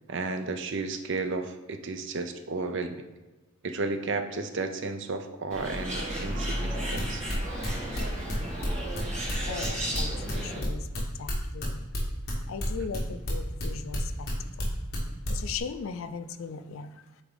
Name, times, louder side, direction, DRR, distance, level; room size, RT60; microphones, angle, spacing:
voice 1, 0.1-3.0 3.6-7.2, right 3 dB, 55° right, 8 dB, 0.5 m, -33 dB
Bird, 5.5-10.6, equal, 30° right, 1.7 m, -33 dB
sound 1, 6.9-10.3 10.6-14.3 14.6-15.0 15.2-15.6, left 1 dB, 45° left, 1.6 m, -33 dB
voice 2, 9.5-11.9 12.5-14.3 14.5-14.7 15.3-17.1, left 5 dB, 65° left, 11 dB, 0.4 m, -38 dB
8.2 x 3.5 x 3.8 m, 1.1 s
head